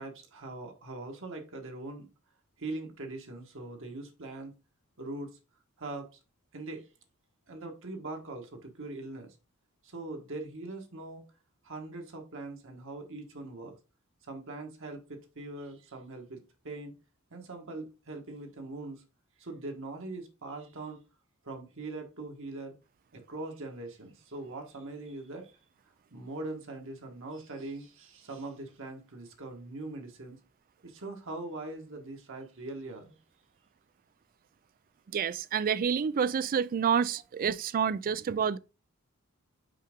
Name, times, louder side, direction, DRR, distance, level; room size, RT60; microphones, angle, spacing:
voice 1, 0.0-2.1 2.6-4.5 5.0-5.4 5.8-6.2 6.5-6.9 7.5-9.3 9.8-11.3 11.6-13.7 14.2-16.9 17.3-19.0 19.4-21.0 21.4-22.7 23.1-25.6 26.1-30.4 30.8-33.1, right 2 dB, 60° right, 1.4 m, -41 dB
voice 2, 35.1-38.6, right 7 dB, 40° right, 0.3 m, -28 dB
5.7 x 4.8 x 3.6 m
head